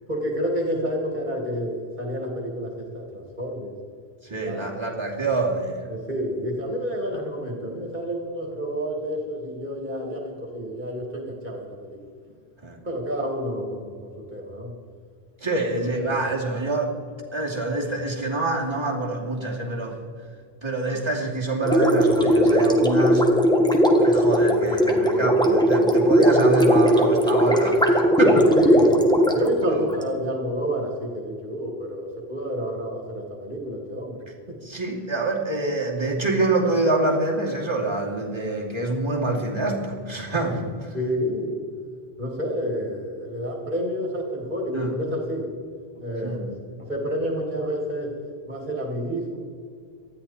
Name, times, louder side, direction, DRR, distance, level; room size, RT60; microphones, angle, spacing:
voice 1, 0.1-3.7 4.4-4.7 5.9-12.0 12.8-14.7 16.2-16.3 28.6-29.0 29.3-34.6 40.9-41.6 42.2-45.5 46.0-46.5 46.9-48.2 48.5-49.4, equal, 45° right, 0 dB, 2.5 m, -29 dB
voice 2, 4.2-5.8 12.6-12.8 15.4-16.9 17.3-20.0 20.6-23.3 24.0-28.5 29.7-29.8 34.6-40.9 44.7-45.0 46.2-46.5, right 2 dB, 25° right, -2 dB, 2.6 m, -26 dB
Gurgling, 21.6-30.0, equal, 5° left, 1.5 m, -18 dB
19.0 x 13.5 x 4.3 m, 2.1 s
omnidirectional pair, 1.1 m